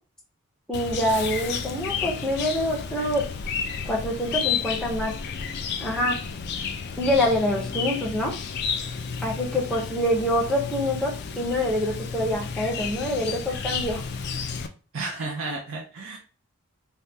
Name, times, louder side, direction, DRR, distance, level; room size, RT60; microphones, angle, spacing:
Chirp tweet, 0.7-14.7, left 6 dB, 50° left, 0.3 m, -32 dB
voice 1, 0.7-3.2 3.9-5.1 5.8-6.2 7.0-8.3 9.2-14.0, left 1 dB, ahead, -2 dB, 0.6 m, -25 dB
voice 2, 9.5-9.8 14.9-16.2, right 3 dB, 60° right, 0 dB, 0.5 m, -33 dB
3.4 x 2.2 x 2.7 m, 0.37 s
head